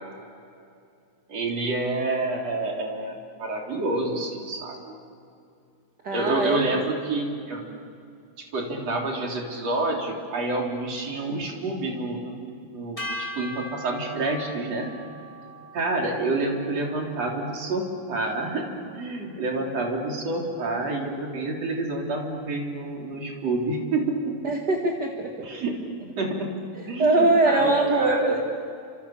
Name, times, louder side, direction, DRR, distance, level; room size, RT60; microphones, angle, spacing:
voice 1, 1.3-4.9 6.1-7.6 8.4-12.3 12.6-14.9 15.7-24.4 25.4-25.7 26.0-26.5 26.9-28.4, right 2 dB, 60° right, 0 dB, 4.7 m, -28 dB
voice 2, 6.0-6.8 24.4-25.5 27.0-28.4, right 2 dB, 40° right, 1 dB, 2.3 m, -22 dB
sound 1, 13.0-19.3, equal, 10° left, 3.6 m, -41 dB
30.0 x 27.0 x 7.3 m, 2.5 s
omnidirectional pair, 3.4 m